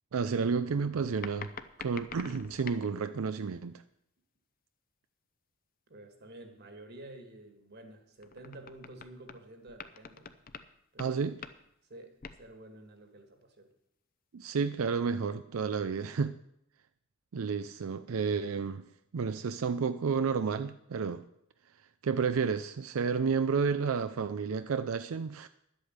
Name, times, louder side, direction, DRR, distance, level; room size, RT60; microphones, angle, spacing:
voice 1, 0.1-1.5 1.8-3.8 11.0-11.4 14.3-16.3 17.3-18.8 19.1-21.2 22.0-25.5, right 5 dB, 90° right, 0.5 m, -31 dB
sound 1, 1.2-2.9 8.2-9.4 9.7-10.7 11.0-11.2 11.4-11.7 12.2-12.4 12.8-12.9, left 6 dB, 45° left, 0.7 m, -46 dB
voice 2, 5.9-10.3 10.9-11.1 11.9-13.7, right 1 dB, 50° right, 2.0 m, -50 dB
11.0 x 8.2 x 8.1 m
head